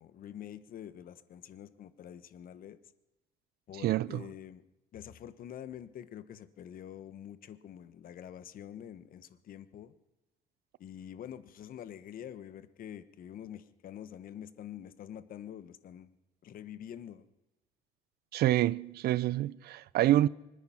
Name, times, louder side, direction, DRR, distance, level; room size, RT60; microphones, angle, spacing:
voice 1, 0.0-2.8 3.7-4.6 4.9-9.9 10.8-16.1 16.4-17.2, left 10 dB, 55° left, 1.2 m, -46 dB
voice 2, 3.8-4.2 18.3-20.3, right 14 dB, 65° right, 0.6 m, -27 dB
24.5 x 9.8 x 5.8 m
cardioid pair, 110°, 17 cm